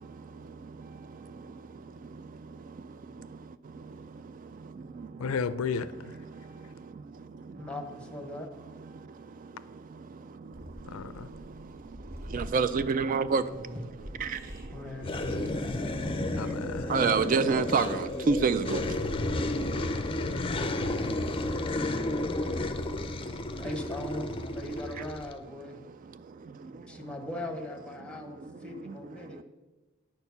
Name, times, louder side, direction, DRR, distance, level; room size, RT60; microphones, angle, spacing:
voice 1, 5.2-6.2 10.8-11.3 16.3-16.9, left 5 dB, 85° left, 0.4 m, -33 dB
voice 2, 7.6-8.5 13.3-13.6 14.7-15.5 23.6-25.8 26.6-29.4, left 1 dB, 5° left, 1.0 m, -40 dB
sound 1, 10.5-21.6, equal, 15° right, 2.3 m, -47 dB
voice 3, 12.3-13.4 14.2-14.4 16.9-18.8, right 5 dB, 40° right, 0.3 m, -26 dB
sound 2, 15.0-25.4, left 2 dB, 25° left, 0.5 m, -32 dB
9.6 x 4.5 x 6.8 m
head